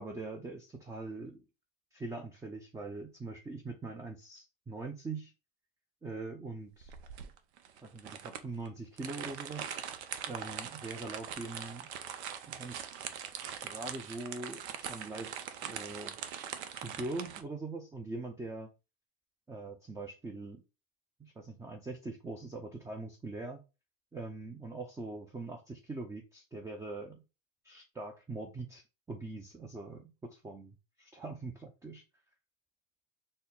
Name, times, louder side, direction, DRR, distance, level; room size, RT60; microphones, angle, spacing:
voice 1, 0.0-1.4 1.9-5.3 6.0-6.9 7.8-9.7 10.2-11.9 12.5-13.0 13.6-16.2 16.7-18.7 19.5-20.6 21.2-23.6 24.1-27.2 27.6-30.7 31.0-32.0, right 3 dB, 10° right, 4 dB, 0.4 m, -42 dB
sound 1, 6.8-17.4, right 8 dB, 85° right, 0.6 m, -42 dB
4.2 x 2.1 x 3.6 m, 0.29 s
supercardioid pair, 105°, 32 cm